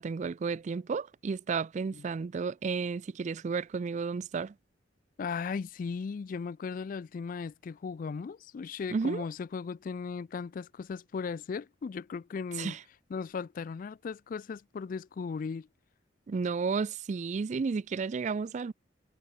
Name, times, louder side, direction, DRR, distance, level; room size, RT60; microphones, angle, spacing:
voice 1, 0.0-4.5 8.9-9.2 12.6-12.8 16.3-18.7, right 5 dB, 40° right, 0.3 m, -32 dB
voice 2, 5.2-12.8 13.1-15.7, left 5 dB, 45° left, 0.3 m, -37 dB
head